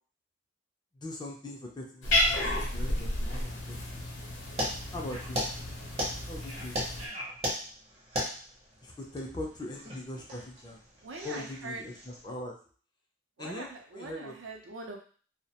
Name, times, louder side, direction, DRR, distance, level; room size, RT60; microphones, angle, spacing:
voice 1, 0.9-4.1 4.9-5.4 6.3-6.8 8.8-10.8 11.2-12.5 13.4-14.4, left 1 dB, 20° left, 0 dB, 0.4 m, -41 dB
Cat, 2.0-7.1, left 1 dB, 80° left, 0.7 m, -32 dB
sound 1, 4.6-12.3, equal, 35° right, 0.6 m, -37 dB
voice 2, 11.0-11.9 13.4-15.0, right 3 dB, 75° right, 1 dB, 0.5 m, -42 dB
2.3 x 2.0 x 2.8 m, 0.43 s
head